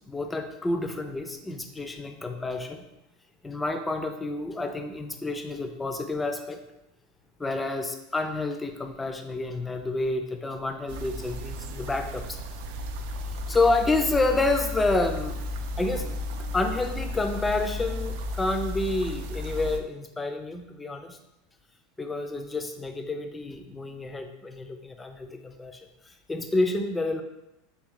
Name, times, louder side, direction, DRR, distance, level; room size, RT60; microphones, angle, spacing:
voice 1, 0.1-2.9 3.4-6.6 7.4-12.4 13.5-15.4 15.8-16.1 16.5-21.2 22.0-25.8 26.3-27.2, left 2 dB, 10° left, 6 dB, 0.3 m, -29 dB
sound 1, 10.9-19.8, left 1 dB, 70° right, 0.3 m, -34 dB
3.4 x 2.4 x 3.6 m, 0.90 s
supercardioid pair, 135°, 0 cm